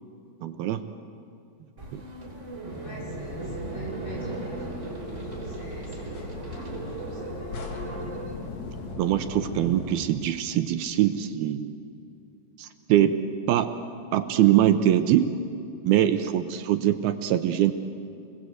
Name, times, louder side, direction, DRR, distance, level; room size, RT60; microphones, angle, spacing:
voice 1, 0.4-0.8 1.9-2.0 9.0-11.8 12.6-13.2 13.5-13.7 14.1-15.3 15.8-17.7, right 11 dB, 75° right, 9 dB, 2.5 m, -23 dB
sound 1, 1.8-8.9, right 2 dB, 20° right, 3.0 m, -37 dB
sound 2, 2.7-10.0, left 3 dB, 50° left, 2.6 m, -39 dB
voice 2, 2.8-8.3, equal, 80° left, -4 dB, 8.0 m, -46 dB
29.0 x 21.0 x 8.0 m, 2.6 s
omnidirectional pair, 4.8 m